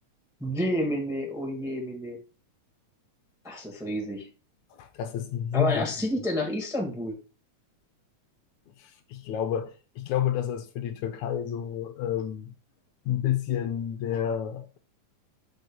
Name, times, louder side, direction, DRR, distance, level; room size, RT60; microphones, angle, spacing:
voice 1, 0.4-2.2 3.4-4.3 5.5-7.2, equal, ahead, 0.9 m, -29 dB
voice 2, 4.7-5.9 8.8-12.5 13.1-14.8, left 10 dB, 80° left, 2.0 m, -30 dB
8.0 x 6.6 x 2.3 m
omnidirectional pair, 3.4 m